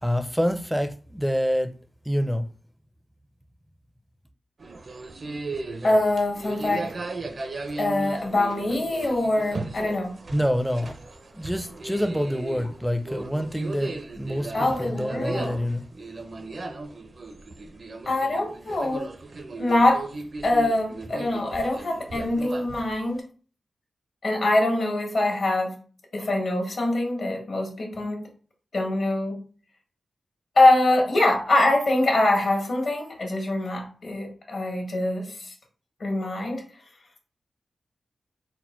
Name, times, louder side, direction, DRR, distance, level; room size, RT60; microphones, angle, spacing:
voice 1, 0.0-1.7 2.1-2.5 10.3-11.0 11.3-15.8, equal, ahead, 0.5 m, -26 dB
sound 1, 4.6-23.2, right 3 dB, 50° right, 0.5 m, -37 dB
voice 2, 5.8-6.9 7.8-10.1 14.5-15.6 18.1-19.1 19.6-20.0 20.4-23.2 24.2-25.7 26.1-28.3 28.7-29.4 30.6-35.5 36.0-36.6, left 2 dB, 65° left, 1.4 m, -23 dB
4.3 x 2.1 x 4.2 m
wide cardioid pair, 90°, 0 cm